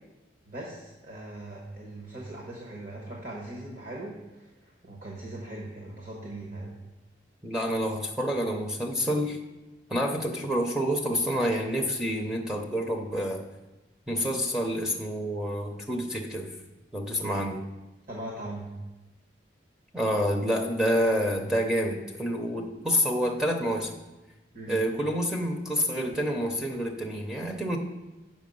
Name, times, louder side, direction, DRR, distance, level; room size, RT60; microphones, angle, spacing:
voice 1, 0.5-6.7 18.1-18.7 24.5-24.8, right 1 dB, 45° right, -2 dB, 1.2 m, -40 dB
voice 2, 7.4-9.4 9.9-13.5 14.1-16.5 16.9-17.6 19.9-24.0 24.7-27.8, equal, 5° right, -1 dB, 0.6 m, -28 dB
7.5 x 5.6 x 5.3 m, 1.1 s
head